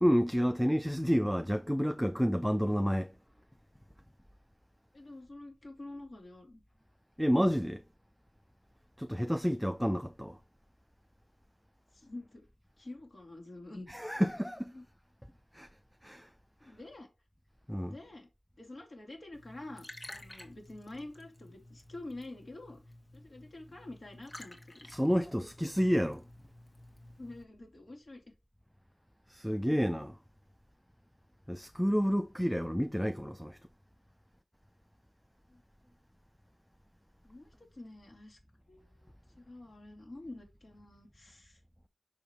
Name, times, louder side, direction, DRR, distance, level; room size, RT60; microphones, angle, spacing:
voice 1, 0.0-3.1 7.2-7.8 9.0-10.4 13.9-14.7 15.5-15.7 16.0-16.3 17.7-17.9 24.9-26.3 29.3-30.2 31.5-33.6, equal, ahead, 0.5 m, -29 dB
voice 2, 4.9-6.6 11.9-12.4 12.8-13.9 14.7-14.8 16.6-17.1 17.9-18.3 18.6-19.9 20.1-22.8 23.1-24.9 27.2-28.2 35.5-35.6 37.2-38.4 38.7-39.1 39.4-41.6, left 2 dB, 55° left, 3.0 m, -47 dB
Liquid, 19.3-27.4, left 1 dB, 35° left, 1.7 m, -52 dB
6.2 x 5.3 x 4.5 m
wide cardioid pair, 65°, 0 cm